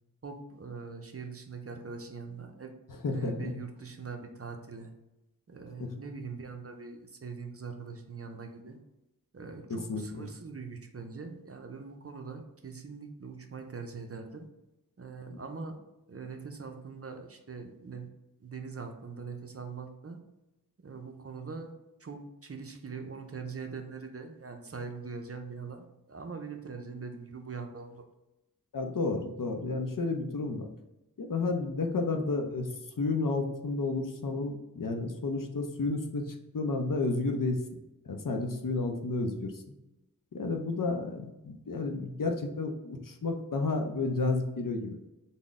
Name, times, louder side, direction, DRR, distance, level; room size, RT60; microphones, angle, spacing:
voice 1, 0.2-2.7 3.0-4.9 5.5-8.8 9.3-14.5 15.0-15.8 16.1-18.1 18.4-20.2 20.8-21.7 22.0-28.0, right 5 dB, 40° right, 4 dB, 0.5 m, -42 dB
voice 2, 2.9-3.5 5.8-5.9 9.7-10.3 15.3-15.4 28.7-30.7 31.2-32.7 33.0-37.6 38.1-39.6 40.3-45.0, left 3 dB, 60° left, 4 dB, 0.5 m, -31 dB
3.8 x 2.1 x 3.6 m, 0.96 s
wide cardioid pair, 45°, 37 cm